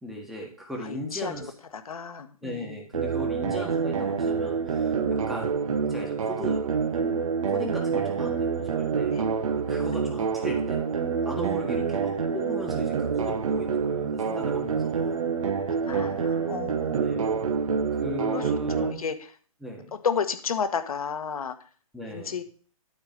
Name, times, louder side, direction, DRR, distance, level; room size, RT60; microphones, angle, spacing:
voice 1, 0.0-1.5 2.4-5.6 5.9-6.7 7.5-9.2 9.7-10.8 11.2-15.2 17.0-17.2 17.9-19.0 19.6-20.0 21.9-22.4, equal, ahead, 0 dB, 1.5 m, -37 dB
voice 2, 0.8-1.3 1.7-2.8 3.5-3.6 9.1-9.2 9.7-10.0 15.8-17.2 18.3-18.4 18.8-19.1 19.9-21.5 22.0-22.4, left 6 dB, 70° left, 9 dB, 1.3 m, -32 dB
sound 1, 2.9-18.9, right 6 dB, 60° right, 1.3 m, -27 dB
12.0 x 4.5 x 5.2 m, 0.43 s
hypercardioid pair, 150°, 19 cm